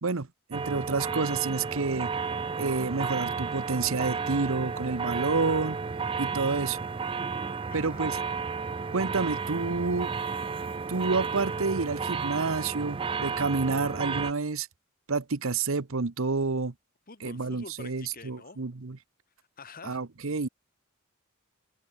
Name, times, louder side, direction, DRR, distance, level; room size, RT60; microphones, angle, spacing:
voice 1, 0.0-2.1 2.6-5.8 6.2-6.8 7.7-8.2 8.9-10.1 10.9-14.7 15.1-16.7 17.2-19.0 19.8-20.5, right 4 dB, 70° right, 1.0 m, -29 dB
sound 1, 0.5-14.3, right 5 dB, 25° right, 0.4 m, -32 dB
voice 2, 7.7-8.4 17.1-18.6 19.6-20.0, left 4 dB, 45° left, 2.9 m, -47 dB
head